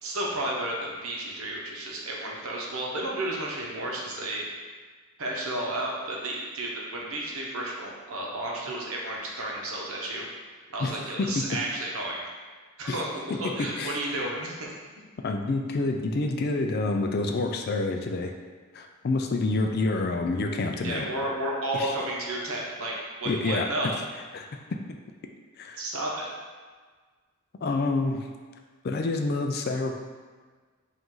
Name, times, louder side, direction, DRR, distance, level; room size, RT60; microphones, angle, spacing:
voice 1, 0.0-4.5 5.2-10.3 10.7-12.2 12.8-14.7 20.8-24.0 25.8-26.3, right 1 dB, 70° right, -3 dB, 0.9 m, -32 dB
voice 2, 10.8-11.5 12.9-13.0 13.3-14.0 15.2-18.3 18.7-21.1 21.7-21.9 23.3-23.7 24.3-24.5 25.6-25.8 27.6-28.3 28.8-29.9, left 3 dB, 45° left, 4 dB, 0.3 m, -28 dB
4.8 x 2.6 x 3.8 m, 1.5 s
head